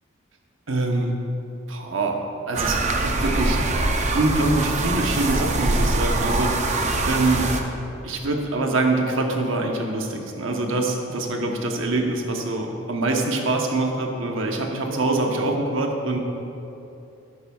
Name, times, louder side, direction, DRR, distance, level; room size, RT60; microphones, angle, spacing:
voice 1, 0.7-1.1 1.7-2.2 2.5-3.6 4.1-7.5 8.0-16.2, right 2 dB, 70° right, 2 dB, 1.0 m, -24 dB
sound 1, 2.5-7.6, right 2 dB, 35° right, 0.6 m, -23 dB
11.5 x 9.6 x 2.4 m, 2.8 s
head